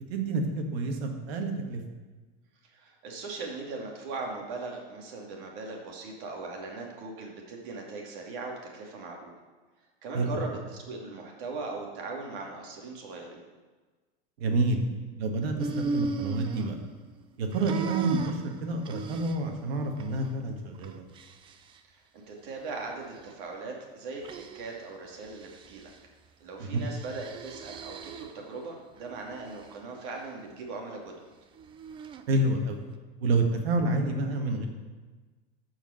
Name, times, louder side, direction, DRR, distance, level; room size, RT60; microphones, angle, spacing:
voice 1, 0.1-1.8 10.1-10.4 14.4-14.8 15.2-16.8 17.4-21.0 26.6-26.9 32.3-32.8 33.2-34.7, right 2 dB, 85° right, 3 dB, 2.0 m, -28 dB
voice 2, 2.6-9.3 10.0-13.4 21.9-25.9 26.4-31.1, right 3 dB, 60° right, 0 dB, 2.6 m, -39 dB
sound 1, 15.6-17.2 17.5-19.6 20.0-20.3 20.7-21.8 22.5-23.3 24.2-24.8 25.2-26.0 26.8-28.5 29.0-29.7 31.6-32.2, right 4 dB, 15° right, 0.4 m, -38 dB
13.5 x 5.1 x 6.6 m, 1.3 s
supercardioid pair, 155°, 30 cm